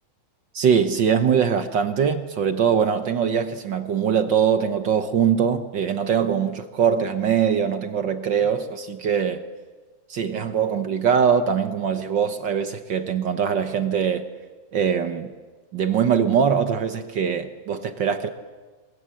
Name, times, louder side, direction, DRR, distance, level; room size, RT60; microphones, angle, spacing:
voice 1, 0.5-9.4 10.1-14.3 14.7-15.3 15.7-18.3, right 7 dB, 60° right, 1.2 m, -22 dB
28.5 x 24.0 x 7.7 m
omnidirectional pair, 3.4 m